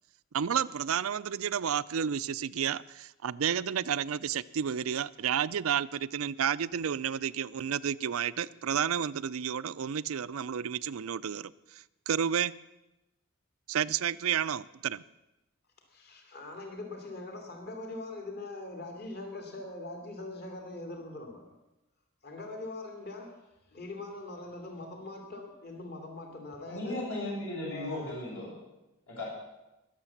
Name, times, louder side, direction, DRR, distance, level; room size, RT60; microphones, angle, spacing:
voice 1, 0.3-12.5 13.7-15.0, right 8 dB, 75° right, 17 dB, 0.5 m, -31 dB
voice 2, 15.9-21.5 22.2-23.4 23.7-27.1 27.7-28.2, left 2 dB, 50° left, 2 dB, 2.6 m, -42 dB
voice 3, 26.7-28.5 29.1-29.3, left 1 dB, 65° left, -5 dB, 6.6 m, -36 dB
21.5 x 7.4 x 7.2 m, 0.96 s
head